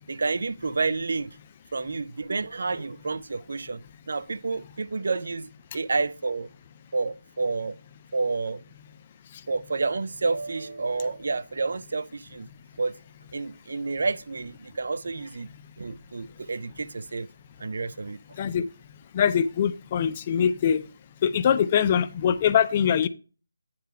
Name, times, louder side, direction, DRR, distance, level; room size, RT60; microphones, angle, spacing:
voice 1, 0.1-1.3 1.7-6.5 6.9-7.8 8.1-8.6 9.5-12.5 12.8-13.0 13.3-15.5 15.8-17.3 17.6-18.2, right 3 dB, 55° right, 0.4 m, -29 dB
voice 2, 19.1-20.8 21.2-23.1, left 8 dB, 20° left, 0.3 m, -23 dB
9.3 x 3.5 x 5.6 m
figure-of-eight pair, 175°, 0 cm